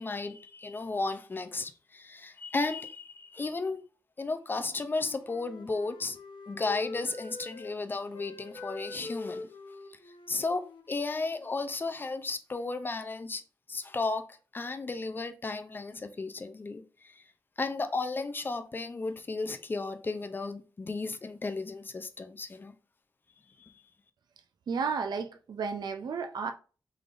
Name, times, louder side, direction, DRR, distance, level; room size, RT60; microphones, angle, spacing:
voice 1, 0.0-3.8 4.2-6.2 6.5-9.5 10.3-13.4 13.7-17.2 17.6-22.7 23.6-23.8, left 3 dB, 25° left, 0.4 m, -34 dB
Wind instrument woodwind instrument, 4.5-7.8 8.1-11.8, left 3 dB, 80° left, 0.7 m, -45 dB
voice 2, 24.7-26.5, right 5 dB, 65° right, 0.4 m, -32 dB
3.7 x 3.3 x 2.4 m
wide cardioid pair, 170°, 8 cm